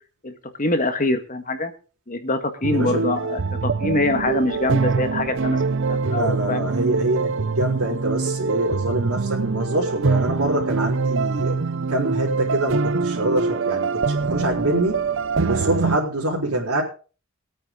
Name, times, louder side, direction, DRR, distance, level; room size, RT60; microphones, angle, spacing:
voice 1, 0.2-1.7 2.1-5.6 5.9-6.7, left 2 dB, 35° left, 7 dB, 1.6 m, -24 dB
sound 1, 2.6-16.0, right 4 dB, 60° right, 0.6 m, -24 dB
voice 2, 2.7-3.0 6.0-11.6 11.9-15.1 15.4-16.8, right 1 dB, 75° right, -5 dB, 4.0 m, -25 dB
21.5 x 9.0 x 3.8 m, 0.35 s
head